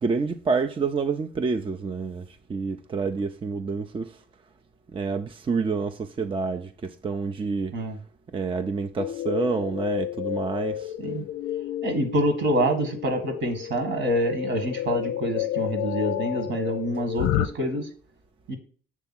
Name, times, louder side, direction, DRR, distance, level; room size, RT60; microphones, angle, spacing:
voice 1, 0.0-4.2 4.9-7.8 8.3-10.9, right 5 dB, 25° right, 0.5 m, -28 dB
sound 1, 9.0-17.5, left 13 dB, 80° left, 0.4 m, -31 dB
voice 2, 11.8-17.9 18.5-18.6, equal, 65° right, 2.0 m, -26 dB
7.1 x 3.5 x 5.8 m
cardioid pair, 90°, 20 cm